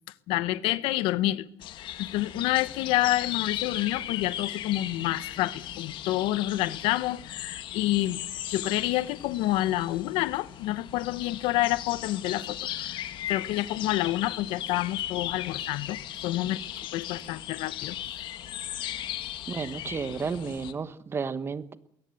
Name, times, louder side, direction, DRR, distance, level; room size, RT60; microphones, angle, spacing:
voice 1, 0.3-1.5 1.8-8.2 8.5-16.0 16.2-16.6 16.9-18.0, left 16 dB, 85° left, 1.0 m, -28 dB
sound 1, 1.6-20.7, left 12 dB, 65° left, 1.7 m, -37 dB
voice 2, 19.5-21.8, right 5 dB, 25° right, 1.2 m, -32 dB
21.5 x 18.0 x 7.9 m
cardioid pair, 135°, 9 cm